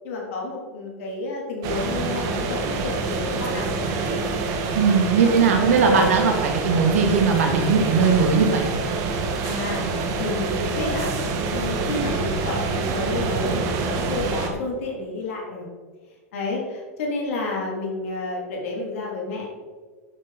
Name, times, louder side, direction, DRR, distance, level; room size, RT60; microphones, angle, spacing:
voice 1, 0.0-4.5 5.2-5.5 9.4-9.9 10.2-11.1 11.4-15.6 16.3-19.5, left 3 dB, 70° left, -2 dB, 3.4 m, -30 dB
sound 1, 1.6-14.5, right 4 dB, 45° right, 1.6 m, -26 dB
voice 2, 4.7-8.7, right 5 dB, 75° right, 3 dB, 2.1 m, -19 dB
11.5 x 7.0 x 4.2 m, 1.5 s
hypercardioid pair, 100°, 8 cm